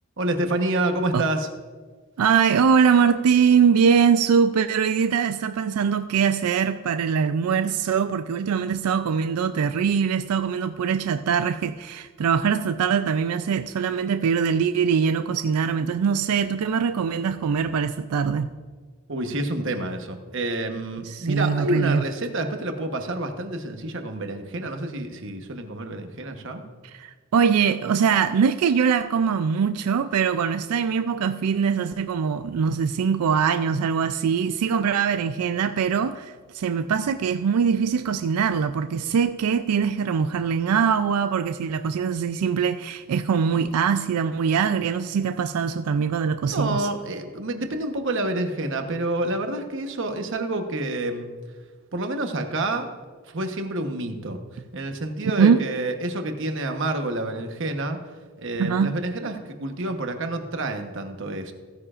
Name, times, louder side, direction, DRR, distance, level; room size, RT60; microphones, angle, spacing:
voice 1, 0.2-1.5 19.1-26.6 46.5-51.3 51.9-52.9 53.3-58.0 58.4-61.5, right 2 dB, 55° right, 5 dB, 1.0 m, -28 dB
voice 2, 2.2-18.5 21.0-22.0 26.8-46.9 55.4-55.6 58.6-59.0, right 6 dB, 85° right, 10 dB, 0.4 m, -22 dB
16.0 x 9.7 x 2.5 m, 1.5 s
head